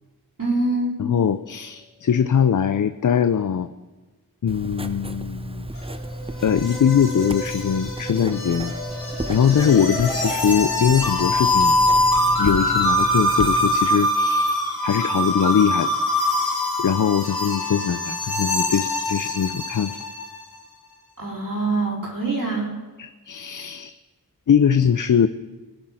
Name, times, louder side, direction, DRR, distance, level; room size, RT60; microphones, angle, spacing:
voice 1, 0.4-0.9 21.2-22.7, right 2 dB, 60° right, -5 dB, 3.8 m, -24 dB
voice 2, 1.0-3.7 4.4-5.7 6.4-8.7 9.3-11.7 12.4-16.0 16.8-20.0 23.0-23.9 24.5-25.3, left 7 dB, 55° left, 11 dB, 0.5 m, -21 dB
Writing, 4.5-13.8, right 1 dB, 15° right, 0.6 m, -33 dB
sound 1, 5.8-20.4, left 1 dB, 80° left, 2.4 m, -23 dB
18.5 x 7.6 x 5.8 m, 1.2 s
wide cardioid pair, 55°, 37 cm